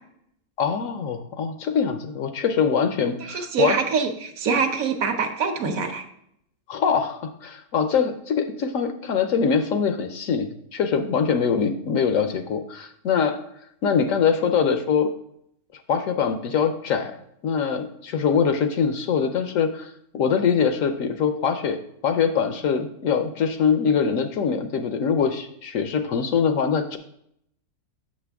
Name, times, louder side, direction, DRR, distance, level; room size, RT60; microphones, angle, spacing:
voice 1, 0.6-3.8 6.7-13.4 13.8-15.1 15.9-17.1 17.4-27.0, left 6 dB, 65° left, 8 dB, 0.9 m, -23 dB
voice 2, 3.2-6.0, right 5 dB, 65° right, 6 dB, 1.1 m, -24 dB
7.4 x 6.4 x 3.4 m, 0.73 s
omnidirectional pair, 1.6 m